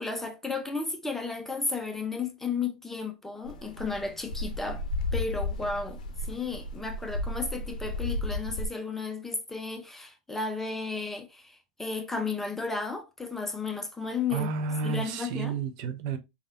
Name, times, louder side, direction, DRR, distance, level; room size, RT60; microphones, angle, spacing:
voice 1, 0.0-4.8 5.1-6.0 6.3-14.5 14.8-15.6, left 4 dB, 10° left, 0.6 m, -33 dB
sound 1, 3.4-8.7, left 2 dB, 80° left, 0.5 m, -33 dB
voice 2, 14.3-16.2, right 5 dB, 55° right, 0.5 m, -31 dB
3.2 x 2.3 x 2.5 m
hypercardioid pair, 110°, 4 cm